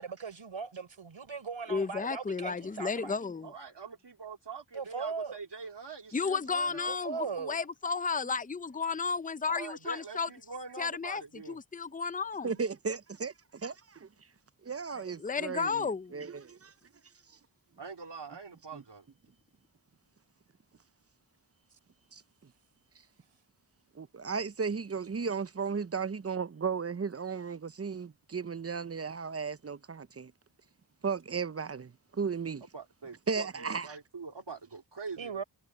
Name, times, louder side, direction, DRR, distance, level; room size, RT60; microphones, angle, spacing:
voice 1, 0.0-3.2 4.7-5.4 6.9-7.6 35.2-35.4, right 5 dB, 80° right, 4.7 m, -38 dB
voice 2, 1.7-3.5 6.1-10.3 10.8-12.5 15.0-16.1, left 5 dB, 20° left, 0.7 m, -33 dB
voice 3, 3.4-7.4 9.5-11.6 17.8-19.1 32.7-35.4, right 5 dB, 60° right, 2.7 m, -44 dB
voice 4, 12.4-14.1 14.6-16.4 18.7-18.8 22.1-22.2 23.9-30.3 31.0-32.6 33.3-33.9, right 5 dB, 30° right, 0.7 m, -35 dB
cardioid pair, 50°, 46 cm